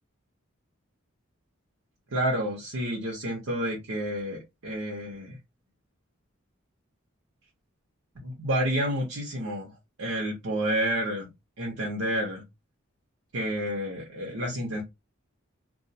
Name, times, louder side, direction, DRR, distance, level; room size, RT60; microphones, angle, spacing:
voice 1, 2.1-5.4 8.2-9.7 10.0-11.3 11.6-12.4 13.3-14.8, right 1 dB, 85° right, 0.7 m, -29 dB
2.3 x 2.2 x 2.6 m
head